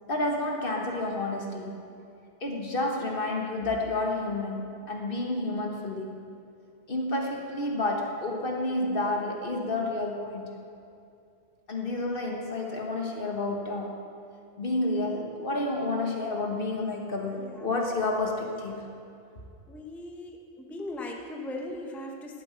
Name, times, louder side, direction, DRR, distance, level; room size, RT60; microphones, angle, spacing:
voice 1, 0.1-1.8 2.4-6.2 6.9-10.5 11.7-14.0 14.6-18.8, left 2 dB, 50° left, 1 dB, 1.6 m, -30 dB
voice 2, 19.7-22.4, left 1 dB, ahead, 1 dB, 0.8 m, -38 dB
12.5 x 7.8 x 8.8 m, 2.5 s
omnidirectional pair, 1.2 m